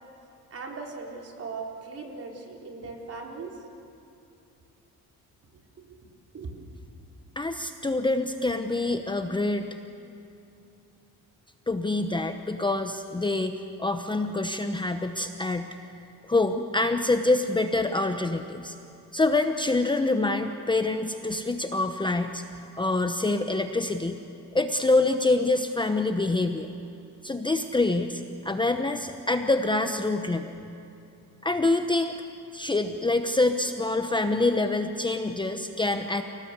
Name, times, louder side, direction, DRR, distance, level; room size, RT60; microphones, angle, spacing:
voice 1, 0.5-3.6 5.5-6.0 6.3-6.5, right 4 dB, 40° right, 0 dB, 4.3 m, -39 dB
voice 2, 7.4-9.8 11.7-13.5 13.8-15.7 16.3-18.7 19.1-22.4 22.8-24.2 24.5-26.7 27.2-30.5 31.4-32.1 32.5-36.2, left 2 dB, 15° left, 6 dB, 1.0 m, -26 dB
29.5 x 18.5 x 8.3 m, 2.7 s
cardioid pair, 110°, 35 cm